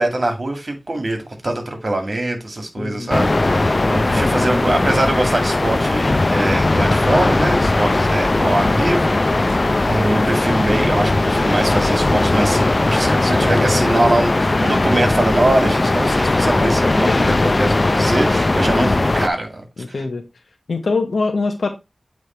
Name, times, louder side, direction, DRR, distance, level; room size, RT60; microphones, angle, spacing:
voice 1, 0.0-19.6 19.9-20.0, right 1 dB, 50° right, 1.9 m, -22 dB
voice 2, 2.8-3.1 13.6-13.8 17.1-17.6 19.8-20.2 20.7-21.7, left 3 dB, 85° left, 0.9 m, -23 dB
sound 1, 3.1-19.3, left 2 dB, 40° left, 0.4 m, -18 dB
8.1 x 3.3 x 4.3 m
wide cardioid pair, 65°, 0 cm